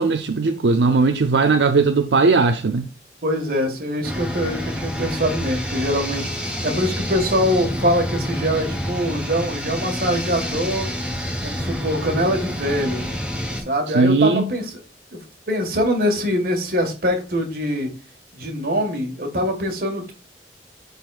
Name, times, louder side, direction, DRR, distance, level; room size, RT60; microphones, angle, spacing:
voice 1, 0.0-2.9 13.9-14.5, right 4 dB, 75° right, 0.5 m, -18 dB
voice 2, 3.2-10.9 11.4-13.0 13.7-14.6 15.1-15.2 15.5-17.9 18.3-20.1, equal, 55° right, 1.7 m, -23 dB
sound 1, 4.0-13.6, equal, 5° right, 1.4 m, -28 dB
11.0 x 4.0 x 2.4 m
head